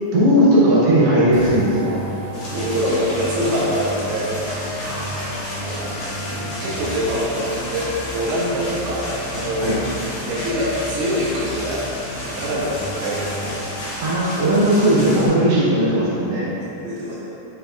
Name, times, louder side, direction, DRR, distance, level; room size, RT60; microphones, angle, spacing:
voice 1, 0.1-2.0 4.8-5.5 9.6-9.7 14.0-16.5, right 1 dB, 60° right, -10 dB, 3.0 m, -17 dB
sound 1, 1.3-13.7, left 1 dB, 80° left, 2.1 m, -33 dB
sound 2, 2.3-15.3, equal, 60° left, 1.7 m, -32 dB
voice 2, 2.5-4.4 5.5-6.0 6.3-9.8 10.2-11.8 12.4-13.6 16.0-16.1 16.6-17.2, equal, 85° right, -7 dB, 3.0 m, -25 dB
7.8 x 5.8 x 2.3 m, 2.9 s
omnidirectional pair, 5.1 m